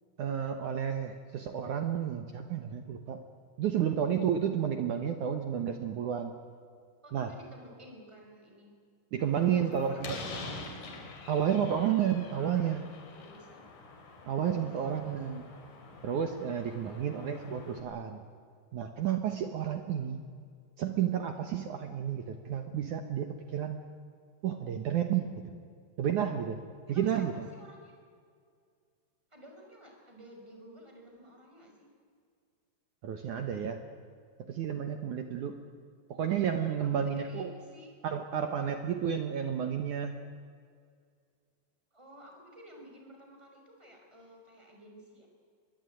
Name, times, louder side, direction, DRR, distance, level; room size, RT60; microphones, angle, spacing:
voice 1, 0.2-3.2 3.6-6.3 7.1-7.3 9.1-10.2 11.3-12.9 14.3-15.4 16.0-18.2 18.7-20.2 20.8-23.8 24.4-25.3 26.0-26.6 26.9-27.5 33.0-33.8 34.5-35.6 36.1-37.5 38.0-40.1, right 9 dB, 70° right, 7 dB, 2.0 m, -31 dB
voice 2, 7.0-8.7 9.3-10.5 12.4-13.6 14.5-15.2 16.8-17.0 26.9-27.9 29.3-31.9 36.8-37.9 41.9-45.3, equal, 5° right, 1 dB, 5.4 m, -53 dB
Slam, 9.2-17.8, left 3 dB, 50° left, 4.0 m, -46 dB
24.5 x 21.0 x 9.3 m, 2.1 s
omnidirectional pair, 5.1 m